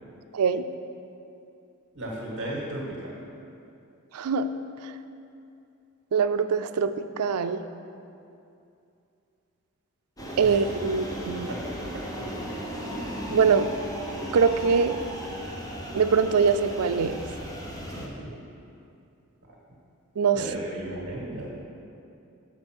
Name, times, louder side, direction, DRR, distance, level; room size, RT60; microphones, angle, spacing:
voice 1, 0.3-0.6 4.1-4.5 4.8-4.9 6.1-7.6 10.4-11.5 13.3-13.7 14.3-15.1 15.9-17.2 20.2-20.5, right 5 dB, 75° right, 10 dB, 0.4 m, -23 dB
voice 2, 1.9-3.1 10.4-10.6 11.5-11.6 11.9-12.0 17.9-18.3 20.3-21.6, right 1 dB, 60° right, -4 dB, 1.5 m, -35 dB
sound 1, 10.2-18.1, equal, 15° left, 1.0 m, -36 dB
7.1 x 6.5 x 6.1 m, 2.6 s
head